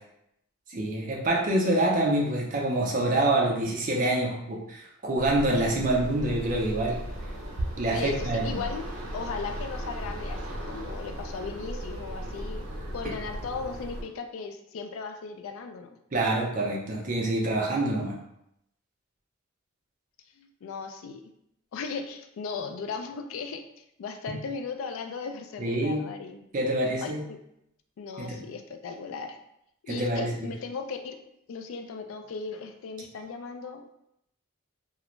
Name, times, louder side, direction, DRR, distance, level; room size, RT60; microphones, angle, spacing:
voice 1, 0.7-7.0 7.8-8.6 16.1-18.2 24.3-24.4 25.6-26.0 26.5-27.2 28.2-28.4 29.9-30.3, right 1 dB, 40° right, -1 dB, 0.5 m, -26 dB
sound 1, 5.2-14.0, equal, 85° right, 0.6 m, -36 dB
voice 2, 7.9-8.9 9.1-10.4 10.7-12.6 12.9-15.9 20.4-21.2 21.7-23.6 24.0-26.5 27.0-27.4 28.0-29.4 29.8-31.2 31.5-33.8, left 5 dB, 70° left, 5 dB, 0.3 m, -37 dB
2.4 x 2.1 x 3.0 m, 0.80 s
head